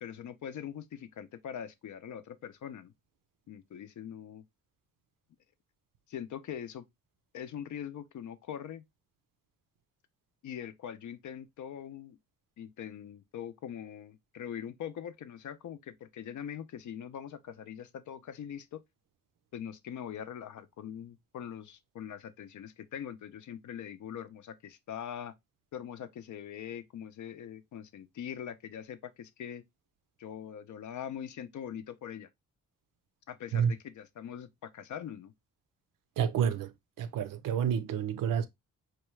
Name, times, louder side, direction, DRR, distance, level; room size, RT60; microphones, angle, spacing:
voice 1, 0.0-2.9 3.5-4.4 6.1-6.9 7.3-8.8 10.4-12.2 12.6-18.8 19.5-25.3 25.7-29.6 30.2-32.3 33.3-35.3, left 9 dB, 60° left, 0.5 m, -42 dB
voice 2, 36.2-36.7 37.0-38.5, right 8 dB, 70° right, 0.6 m, -29 dB
4.5 x 2.3 x 3.0 m
cardioid pair, 110°, 34 cm